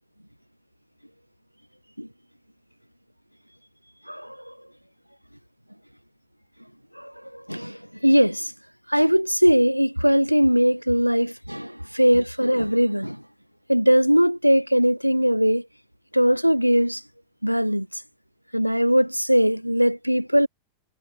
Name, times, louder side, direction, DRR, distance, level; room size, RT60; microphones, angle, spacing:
voice 1, 4.1-4.5 6.9-8.5 8.9-13.2 13.7-15.7 16.1-17.0 17.4-18.0 18.5-20.5, equal, 90° right, 0.7 m, -20 dB
figure-of-eight pair, 90°, 0 cm